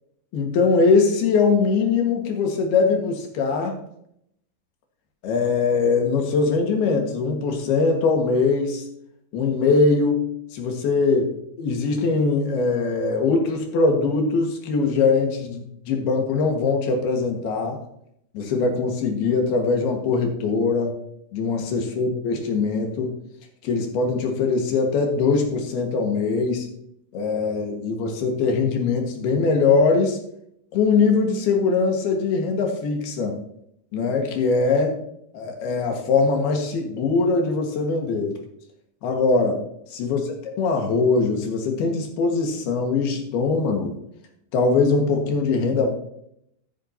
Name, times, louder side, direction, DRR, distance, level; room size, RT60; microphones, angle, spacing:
voice 1, 0.3-3.8 5.2-8.9 9.3-17.8 18.3-20.9 21.3-23.1 23.6-26.7 27.1-30.2 30.7-33.4 33.9-34.9 35.3-38.4 39.0-39.6 39.9-44.0 44.5-45.9, left 4 dB, 85° left, 3 dB, 3.7 m, -22 dB
12.5 x 11.0 x 2.9 m, 0.74 s
omnidirectional pair, 4.4 m